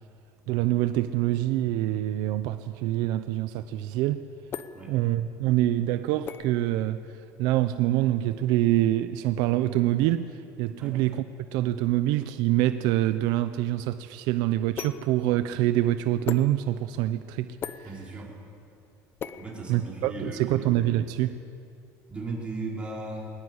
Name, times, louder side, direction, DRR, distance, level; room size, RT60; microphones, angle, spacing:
voice 1, 0.5-4.3 4.9-7.0 7.4-11.2 11.5-17.9 19.7-21.4, right 14 dB, 75° right, 11 dB, 0.7 m, -25 dB
sound 1, 4.5-20.3, left 7 dB, 30° left, 0.8 m, -43 dB
voice 2, 17.8-18.3 19.4-20.7 22.1-23.3, right 2 dB, 15° right, -4 dB, 4.8 m, -36 dB
20.5 x 19.5 x 8.1 m, 2.5 s
cardioid pair, 160°, 7 cm